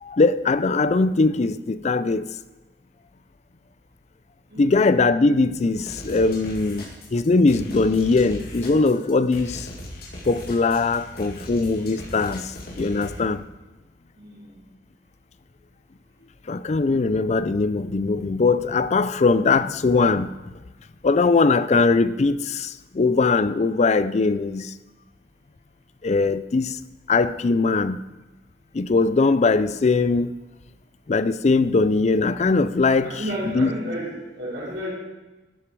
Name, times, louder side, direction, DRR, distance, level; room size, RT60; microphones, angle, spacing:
voice 1, 0.0-2.3 4.6-9.7 10.2-13.4 16.5-20.4 21.0-24.7 26.0-26.8 27.1-28.0 28.7-30.3 31.1-33.1 33.5-33.7, left 3 dB, 40° left, 0.4 m, -21 dB
voice 2, 4.5-5.0 14.2-14.6 33.0-34.9, equal, 85° right, 4.7 m, -32 dB
sound 1, 5.8-13.2, left 1 dB, 55° left, 2.4 m, -38 dB
12.0 x 9.7 x 4.6 m
head